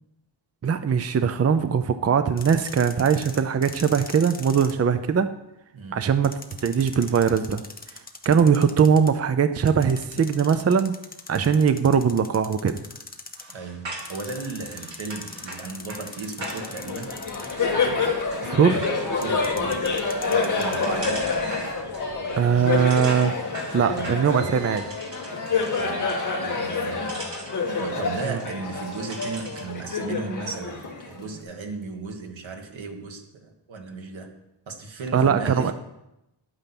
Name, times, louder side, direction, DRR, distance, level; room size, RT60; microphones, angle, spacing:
voice 1, 0.6-5.3 5.9-7.6 8.3-10.9 11.3-12.8 18.4-18.9 22.4-23.3 23.7-24.8 28.3-28.4 35.1-35.7, right 7 dB, 35° right, 10 dB, 0.5 m, -21 dB
sound 1, 2.4-4.7 6.2-9.1 9.7-13.5 14.0-17.7 19.2-20.8, left 3 dB, 20° left, 0.9 m, -41 dB
voice 2, 5.7-6.1 13.5-17.1 19.2-19.9 20.2-21.3 22.2-22.9 23.8-24.1 25.8-26.1 26.4-27.2 27.8-34.4 34.7-35.7, right 4 dB, 85° right, 4 dB, 1.8 m, -35 dB
sound 2, 13.3-29.7, right 2 dB, 70° right, 2.9 m, -41 dB
Laughter, 16.4-31.4, left 4 dB, 40° left, 2.1 m, -28 dB
11.0 x 8.9 x 5.9 m, 0.87 s
wide cardioid pair, 175°, 45 cm